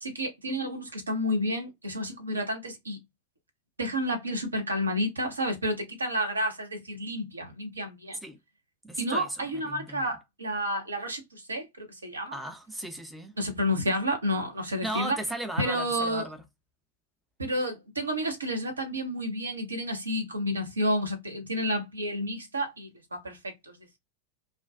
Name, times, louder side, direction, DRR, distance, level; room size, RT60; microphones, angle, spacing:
voice 1, 0.0-3.0 3.8-8.2 9.0-12.4 13.4-15.2 15.6-16.3 17.4-24.0, equal, 75° right, 0.8 m, -30 dB
voice 2, 8.8-9.3 9.6-10.1 12.3-13.4 14.8-16.4, right 1 dB, 5° right, 0.5 m, -36 dB
2.4 x 2.2 x 2.3 m
figure-of-eight pair, 90°, 0 cm